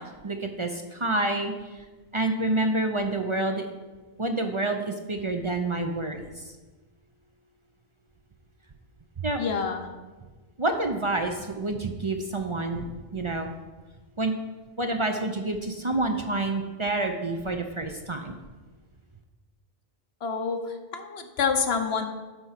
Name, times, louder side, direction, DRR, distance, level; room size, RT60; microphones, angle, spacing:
voice 1, 0.0-1.5 2.1-3.7 4.2-6.2 9.2-9.4 10.6-12.9 13.1-13.5 14.2-14.3 14.8-18.3, right 2 dB, 35° right, 4 dB, 0.6 m, -28 dB
voice 2, 9.4-9.8 20.2-22.1, left 5 dB, 80° left, 6 dB, 1.1 m, -27 dB
11.0 x 4.5 x 5.8 m, 1.3 s
omnidirectional pair, 1.0 m